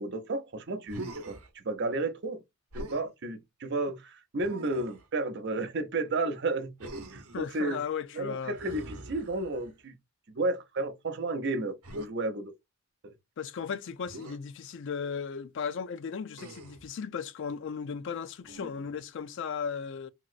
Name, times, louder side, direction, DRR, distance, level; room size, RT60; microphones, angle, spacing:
voice 1, 0.0-2.4 2.7-7.8 8.2-9.9 10.3-12.5 13.0-13.1, right 2 dB, 50° right, 0.6 m, -32 dB
Human voice, 0.9-1.5 2.7-3.1 4.4-5.1 6.8-7.5 8.6-9.8 11.8-12.1 14.1-14.4 16.3-16.9 18.5-19.0, right 1 dB, 85° right, 0.8 m, -43 dB
voice 2, 7.3-8.7 13.4-20.1, left 6 dB, 55° left, 0.4 m, -36 dB
3.0 x 2.8 x 2.4 m
head